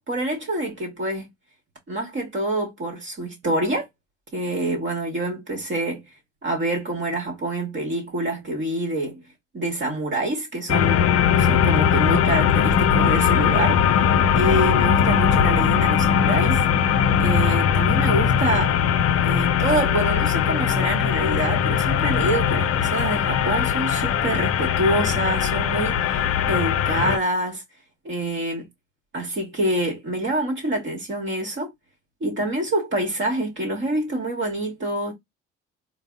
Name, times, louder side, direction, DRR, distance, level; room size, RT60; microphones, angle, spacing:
voice 1, 0.1-1.3 1.9-3.9 4.3-6.0 6.4-9.2 9.5-11.1 11.4-13.8 14.3-16.6 17.2-18.7 19.2-27.6 28.0-28.7 29.1-31.7 32.2-35.1, right 1 dB, 35° right, 1.3 m, -26 dB
sound 1, 10.7-27.2, left 8 dB, 45° left, 0.6 m, -20 dB
3.9 x 2.1 x 3.5 m
figure-of-eight pair, 55°, 34 cm